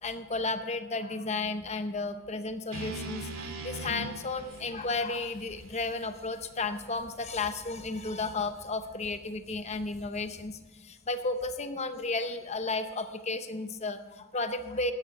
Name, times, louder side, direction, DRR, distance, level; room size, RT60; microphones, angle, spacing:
voice 1, 0.0-3.3 3.6-14.9, left 3 dB, 30° left, 9 dB, 0.8 m, -33 dB
sound 1, 2.7-6.9, right 2 dB, 75° right, 2.4 m, -41 dB
sound 2, 4.4-11.5, equal, ahead, 4.9 m, -56 dB
14.0 x 11.0 x 4.8 m, 1.2 s
head